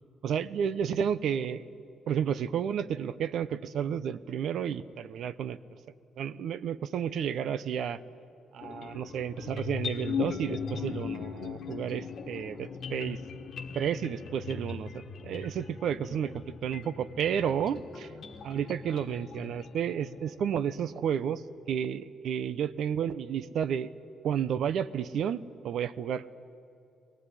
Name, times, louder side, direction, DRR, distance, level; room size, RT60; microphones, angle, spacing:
voice 1, 0.2-1.6 2.1-5.6 6.2-8.0 8.5-13.2 13.7-18.1 18.4-21.4 21.7-23.9 24.2-26.2, right 8 dB, 70° right, 16 dB, 0.8 m, -31 dB
sound 1, 8.6-20.8, left 6 dB, 55° left, 1.5 m, -39 dB
21.5 x 18.5 x 9.9 m, 2.7 s
cardioid pair, 90°, 0 cm